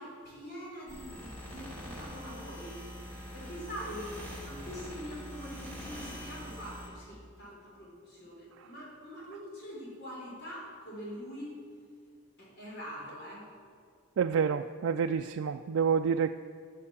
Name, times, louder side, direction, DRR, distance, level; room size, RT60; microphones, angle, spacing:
voice 1, 0.0-11.6 12.4-13.5, equal, 55° left, -6 dB, 4.0 m, -44 dB
sound 1, 0.9-6.9, equal, 10° left, 2.9 m, -44 dB
voice 2, 14.2-16.3, right 6 dB, 85° right, 6 dB, 0.3 m, -28 dB
14.0 x 6.7 x 7.5 m, 2.1 s
head